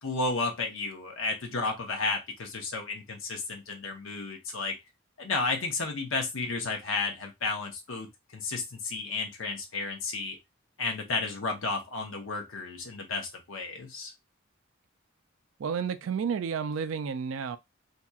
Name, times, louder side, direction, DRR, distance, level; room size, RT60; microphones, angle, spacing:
voice 1, 0.0-4.7 5.2-10.4 10.8-14.1, left 3 dB, 85° left, 0.8 m, -32 dB
voice 2, 15.6-17.6, right 6 dB, 70° right, 0.4 m, -31 dB
2.8 x 2.8 x 2.2 m
head